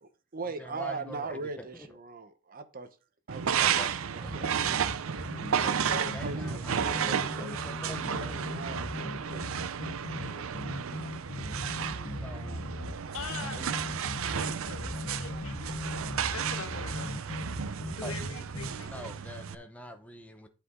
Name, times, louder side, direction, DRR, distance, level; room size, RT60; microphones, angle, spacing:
voice 1, 0.0-3.0 3.3-4.4 5.5-9.5, right 3 dB, 40° right, 0.9 m, -41 dB
voice 2, 0.6-1.9 3.6-4.6 5.5-8.3 12.2-12.7 13.6-13.7 18.0-18.1 18.8-20.5, equal, 5° left, 0.7 m, -44 dB
sound 1, 3.3-19.5, right 8 dB, 65° right, 0.5 m, -33 dB
sound 2, 4.2-18.7, left 1 dB, 35° left, 1.0 m, -39 dB
voice 3, 13.1-13.6 14.2-15.7 16.2-17.1 18.0-19.1, left 4 dB, 70° left, 1.5 m, -43 dB
11.0 x 5.0 x 3.7 m
head